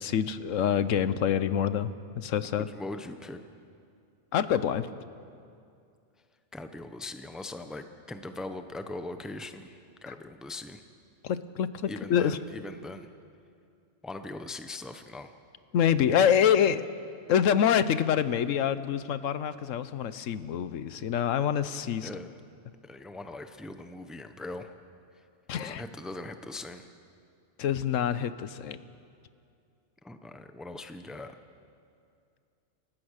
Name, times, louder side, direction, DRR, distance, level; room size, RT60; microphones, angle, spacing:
voice 1, 0.0-1.9 2.2-2.7 4.3-4.9 11.2-12.4 15.7-16.8 17.3-22.1 25.5-25.8 27.6-28.8, left 9 dB, 90° left, 14 dB, 1.1 m, -26 dB
voice 2, 2.6-3.4 6.5-10.8 11.9-13.1 14.0-15.3 22.0-22.3 22.9-24.7 25.6-26.9 30.0-31.3, left 2 dB, ahead, 8 dB, 0.7 m, -40 dB
28.0 x 15.0 x 6.5 m, 2.4 s
omnidirectional pair, 1.3 m